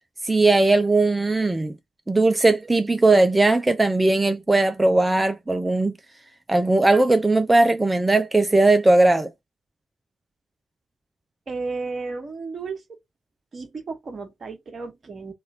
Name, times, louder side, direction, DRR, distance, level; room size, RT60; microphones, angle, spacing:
voice 1, 0.2-1.7 2.1-5.9 6.5-9.3, right 2 dB, 15° right, 0.4 m, -18 dB
voice 2, 11.5-12.8 13.5-15.3, right 4 dB, 35° right, 1.1 m, -33 dB
3.1 x 2.4 x 4.2 m
figure-of-eight pair, 40°, 0 cm